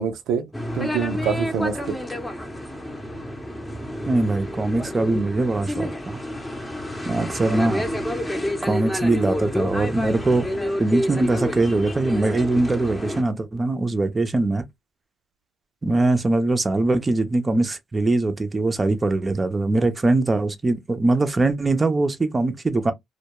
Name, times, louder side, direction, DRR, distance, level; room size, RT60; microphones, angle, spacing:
voice 1, 0.0-2.0 7.4-7.6, right 7 dB, 85° right, 0.5 m, -26 dB
sound 1, 0.5-13.2, left 1 dB, 10° left, 0.7 m, -29 dB
voice 2, 4.1-6.2 7.0-7.9 8.6-10.5 10.8-14.6 15.8-22.9, right 2 dB, 25° right, 0.5 m, -22 dB
2.2 x 2.2 x 2.9 m
cardioid pair, 90°, 0 cm